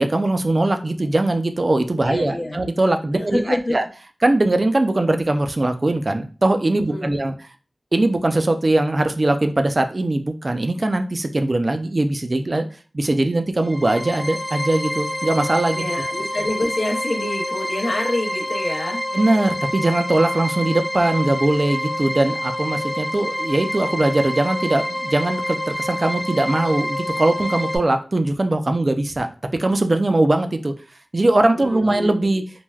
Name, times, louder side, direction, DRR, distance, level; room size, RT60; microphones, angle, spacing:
voice 1, 0.0-3.8 4.2-7.3 7.9-12.6 12.9-15.8 19.1-29.3 29.6-30.7 31.1-32.4, right 2 dB, 45° right, 7 dB, 0.3 m, -20 dB
voice 2, 2.0-2.6 3.3-3.8 6.9-7.1 15.7-19.0 31.5-32.3, left 1 dB, 70° left, 0 dB, 0.6 m, -26 dB
sound 1, 13.6-27.8, left 1 dB, 20° left, 0.7 m, -27 dB
3.2 x 2.1 x 2.2 m, 0.37 s
cardioid pair, 45°, 0 cm